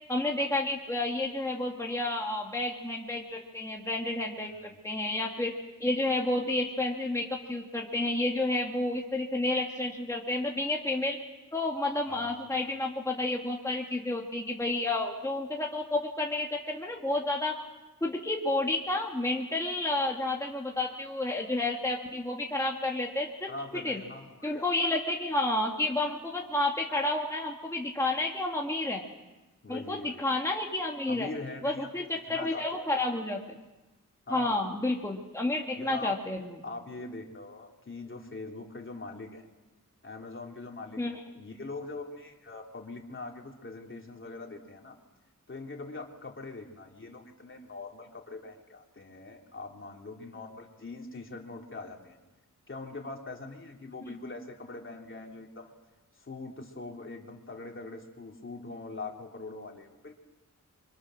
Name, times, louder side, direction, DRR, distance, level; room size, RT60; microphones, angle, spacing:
voice 1, 0.1-4.5 4.8-5.5 5.8-11.2 11.5-17.5 18.0-23.5 23.8-24.0 24.4-29.0 29.7-31.3 31.6-33.6 34.3-36.5 41.0-41.2, left 2 dB, 10° left, -1 dB, 2.0 m, -30 dB
voice 2, 12.1-12.5 23.5-24.7 29.6-30.2 31.1-33.0 34.3-34.6 35.8-36.1 36.6-39.5 40.0-45.0 45.5-52.2 52.7-55.7 56.1-60.1, left 3 dB, 35° left, 1 dB, 3.2 m, -42 dB
29.5 x 25.0 x 6.4 m, 1.1 s
wide cardioid pair, 140°, 33 cm